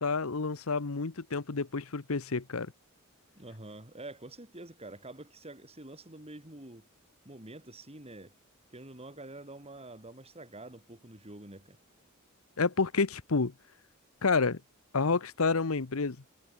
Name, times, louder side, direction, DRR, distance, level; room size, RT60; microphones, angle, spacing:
voice 1, 0.0-2.7 12.6-13.5 14.2-14.6 14.9-16.2, left 4 dB, 90° left, 1.0 m, -29 dB
voice 2, 3.4-6.9 7.3-8.3 8.7-11.8, right 2 dB, 30° right, 5.4 m, -47 dB
head